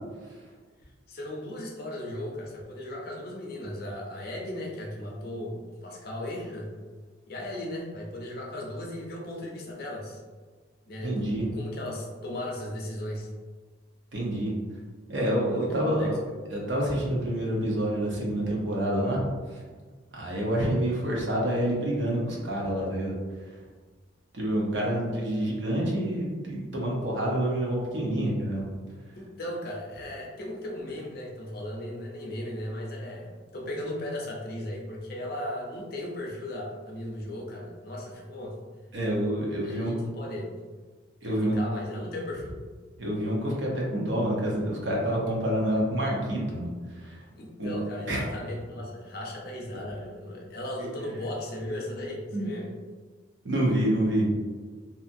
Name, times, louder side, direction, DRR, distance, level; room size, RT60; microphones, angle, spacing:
voice 1, 1.1-6.7 7.3-10.2 10.9-13.3 15.5-16.1 29.1-38.6 39.6-40.5 41.3-42.6 47.3-52.7, left 1 dB, 50° left, -2 dB, 0.6 m, -36 dB
voice 2, 11.0-11.5 14.1-14.5 15.1-16.2 16.5-19.6 20.1-23.1 23.4-23.6 24.3-28.7 38.9-39.9 41.2-41.6 43.0-47.2 47.6-47.8 48.1-48.2 52.3-52.5 53.4-54.3, right 1 dB, 70° right, -3 dB, 0.8 m, -28 dB
2.8 x 2.4 x 2.6 m, 1.4 s
head